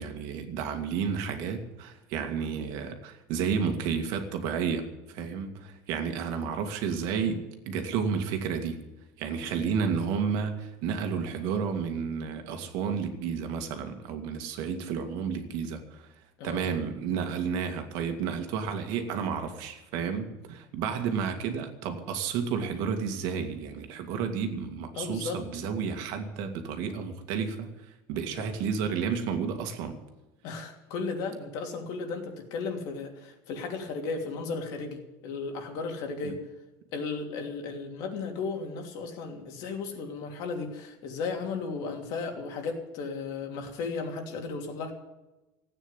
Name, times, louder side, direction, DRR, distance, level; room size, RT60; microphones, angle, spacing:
voice 1, 0.0-8.8 9.2-16.1 16.4-27.7 28.1-30.0 36.2-36.3, right 6 dB, 65° right, 6 dB, 2.1 m, -31 dB
voice 2, 24.9-25.4 30.4-36.4 36.9-44.9, left 4 dB, 55° left, 3 dB, 3.0 m, -35 dB
15.0 x 9.2 x 9.8 m, 1.0 s
cardioid pair, 165°, 8 cm